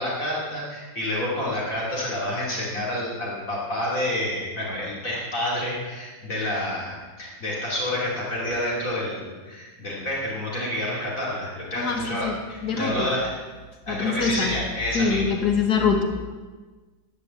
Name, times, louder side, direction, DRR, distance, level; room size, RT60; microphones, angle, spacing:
voice 1, 0.0-13.4 13.9-15.3, left 1 dB, 55° left, -5 dB, 3.3 m, -29 dB
voice 2, 11.7-12.4 12.6-13.1 13.9-14.6 14.9-16.0, left 5 dB, 80° left, 3 dB, 2.0 m, -24 dB
11.0 x 11.0 x 7.5 m, 1.3 s
omnidirectional pair, 1.7 m